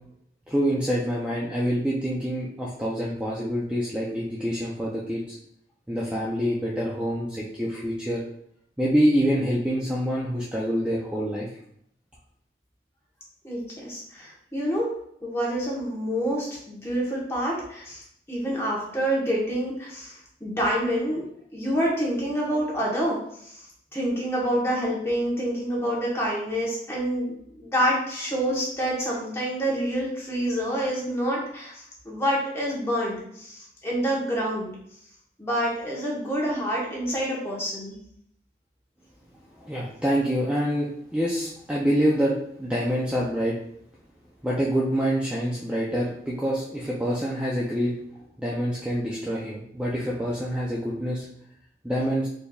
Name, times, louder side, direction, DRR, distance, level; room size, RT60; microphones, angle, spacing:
voice 1, 0.5-5.4 5.9-8.2 8.8-11.5 39.5-43.6 44.4-47.9 48.4-51.2 51.8-52.3, equal, 5° right, -6 dB, 0.5 m, -26 dB
voice 2, 13.4-14.9 15.2-21.2 21.5-23.6 23.9-34.7 35.4-38.0, equal, 15° left, -4 dB, 1.0 m, -27 dB
4.3 x 3.4 x 2.3 m, 0.71 s
head